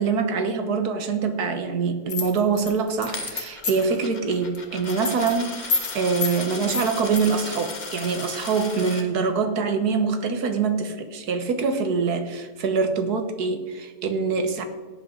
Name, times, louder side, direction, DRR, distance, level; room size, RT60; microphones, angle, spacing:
voice 1, 0.0-14.6, right 5 dB, 85° right, 8 dB, 1.7 m, -24 dB
sound 1, 2.1-4.0 4.3-4.6 4.8-5.3 5.7-5.9 6.2-6.4 6.7-7.2, left 4 dB, 65° left, 2.3 m, -27 dB
Coin (dropping), 3.1-9.0, left 3 dB, 30° left, 1.4 m, -36 dB
17.0 x 9.0 x 3.8 m, 1.4 s
omnidirectional pair, 1.6 m